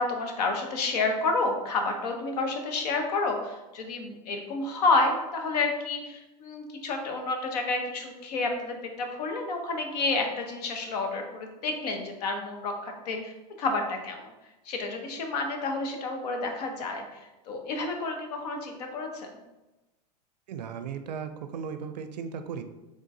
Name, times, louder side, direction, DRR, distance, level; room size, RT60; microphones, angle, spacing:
voice 1, 0.0-13.3 13.6-14.3 14.6-19.4, left 3 dB, 75° left, 3 dB, 0.8 m, -30 dB
voice 2, 20.5-22.6, right 7 dB, 90° right, 8 dB, 0.4 m, -36 dB
3.8 x 3.6 x 2.6 m, 1.0 s
hypercardioid pair, 110°, 21 cm